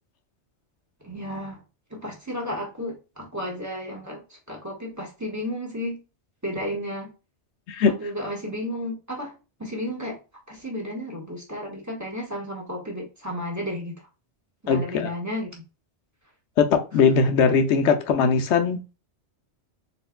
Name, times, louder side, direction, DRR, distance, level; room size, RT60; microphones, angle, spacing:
voice 1, 1.0-1.6 1.9-4.2 4.5-6.0 6.4-7.1 8.0-10.2 10.5-14.0 14.6-15.5, equal, 15° right, 1.3 m, -33 dB
voice 2, 7.7-8.1 14.7-15.1 16.6-18.9, left 5 dB, 80° left, 1.0 m, -20 dB
4.3 x 3.8 x 2.2 m
omnidirectional pair, 1.2 m